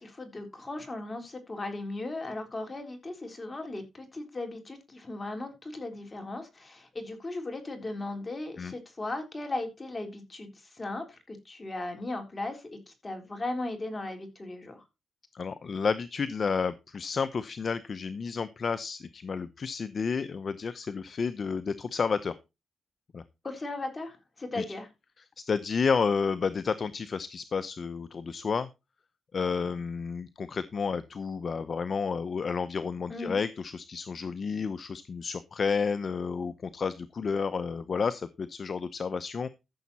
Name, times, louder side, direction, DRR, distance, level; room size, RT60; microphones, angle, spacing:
voice 1, 0.0-14.8 23.4-24.9 33.1-33.4, left 2 dB, 25° left, 5 dB, 3.8 m, -37 dB
voice 2, 15.3-22.4 23.1-23.2 24.6-24.7 25.5-28.7 29.3-39.5, left 5 dB, 45° left, 13 dB, 0.7 m, -31 dB
14.0 x 7.1 x 4.2 m, 0.26 s
cardioid pair, 115°, 0 cm